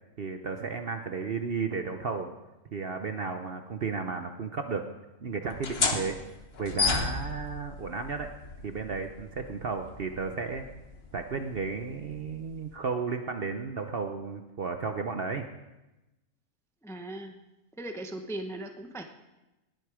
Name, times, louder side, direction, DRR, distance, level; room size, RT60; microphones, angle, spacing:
voice 1, 0.2-2.3 2.7-4.9 5.2-6.2 6.6-8.3 8.6-10.6 11.1-15.5, right 5 dB, 50° right, 6 dB, 0.8 m, -33 dB
sound 1, 5.5-12.8, left 4 dB, 45° left, 1.3 m, -34 dB
voice 2, 16.8-17.3 17.8-19.0, right 1 dB, 5° left, 5 dB, 0.7 m, -38 dB
19.0 x 8.0 x 5.0 m, 1.0 s
omnidirectional pair, 1.5 m